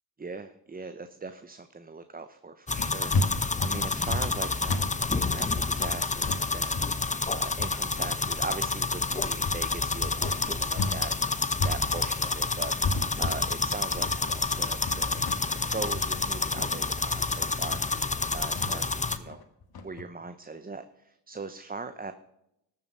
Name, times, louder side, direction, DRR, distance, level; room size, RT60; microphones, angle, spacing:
voice 1, 0.2-4.8 5.1-11.1 11.6-12.7 13.2-15.3 15.7-18.1 18.3-18.9 19.2-19.4 19.8-22.1, right 4 dB, 20° right, 10 dB, 0.9 m, -40 dB
sound 1, 2.7-19.2, left 3 dB, 15° left, 0.9 m, -29 dB
sound 2, 2.8-11.0 11.3-20.0, left 3 dB, 60° left, 1.9 m, -34 dB
13.5 x 7.4 x 5.5 m, 0.82 s
cardioid pair, 60°, 42 cm